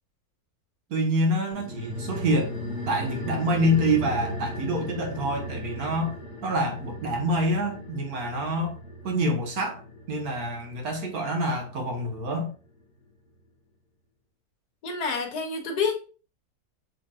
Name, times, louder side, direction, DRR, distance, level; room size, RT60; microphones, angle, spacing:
voice 1, 0.9-2.6 2.9-6.2 6.4-8.8 9.0-9.8 10.1-12.5, equal, 70° right, 1.6 m, -26 dB
sound 1, 1.5-12.4 12.7-12.8, left 1 dB, 40° left, 1.5 m, -37 dB
voice 2, 14.8-15.9, left 5 dB, 85° left, 1.6 m, -28 dB
6.4 x 3.5 x 2.4 m
omnidirectional pair, 1.6 m